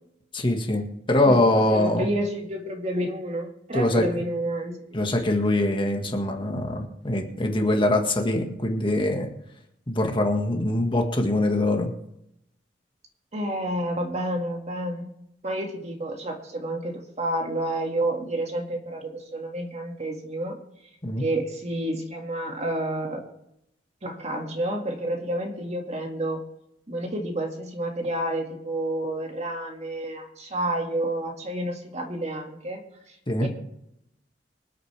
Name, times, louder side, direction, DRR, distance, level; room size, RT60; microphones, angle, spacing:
voice 1, 0.3-2.1 3.7-4.1 4.9-9.3 9.9-11.9 21.0-21.3 33.3-33.5, left 1 dB, 30° left, 3 dB, 1.7 m, -23 dB
voice 2, 1.2-4.9 13.3-15.1 15.4-20.6 21.2-23.2 24.0-26.4 26.9-32.8 33.4-33.5, right 1 dB, 40° right, 2 dB, 2.1 m, -29 dB
25.5 x 8.5 x 3.4 m, 0.79 s
head